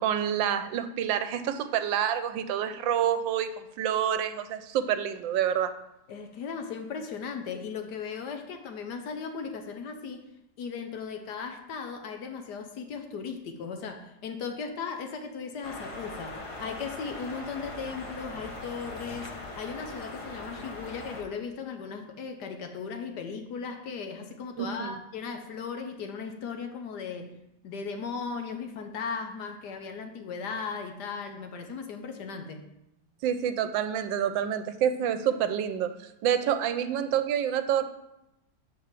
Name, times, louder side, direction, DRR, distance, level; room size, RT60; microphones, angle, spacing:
voice 1, 0.0-5.7 24.6-24.9 33.2-37.8, right 9 dB, 80° right, 10 dB, 1.3 m, -28 dB
voice 2, 6.1-10.3 10.6-27.4 27.6-32.7, left 5 dB, 65° left, 6 dB, 1.2 m, -37 dB
sound 1, 15.6-21.2, left 2 dB, 25° left, 0.7 m, -40 dB
6.8 x 4.4 x 6.5 m, 0.87 s
omnidirectional pair, 2.1 m